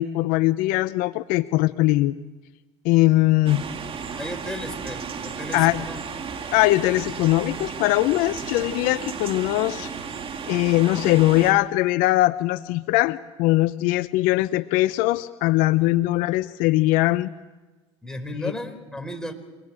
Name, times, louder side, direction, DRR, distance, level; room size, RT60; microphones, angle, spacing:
voice 1, 0.0-2.2 2.8-3.6 5.5-5.8 6.5-9.9 10.5-17.3, left 18 dB, 65° left, 15 dB, 0.7 m, -21 dB
sound 1, 3.5-11.5, right 6 dB, 35° right, 2.5 m, -34 dB
voice 2, 4.2-6.0 18.0-19.3, equal, 5° left, 6 dB, 4.6 m, -34 dB
28.0 x 20.0 x 7.5 m, 1.2 s
hypercardioid pair, 80°, 15 cm